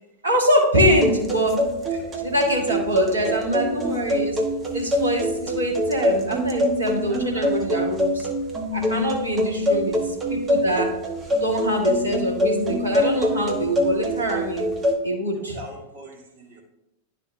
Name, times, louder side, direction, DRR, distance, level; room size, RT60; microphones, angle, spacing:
voice 1, 0.2-1.6 2.2-4.4 4.7-8.1 8.7-10.0 10.3-10.9 11.4-14.6 15.0-15.5, equal, 75° right, -1 dB, 1.7 m, -24 dB
sound 1, 0.7-14.9, left 1 dB, 20° right, 1.1 m, -24 dB
voice 2, 1.9-2.2 3.1-3.5 7.1-7.9 9.4-9.9 15.0-16.6, right 2 dB, 50° right, 0 dB, 2.0 m, -42 dB
11.5 x 3.8 x 3.3 m, 0.89 s
figure-of-eight pair, 90°, 0 cm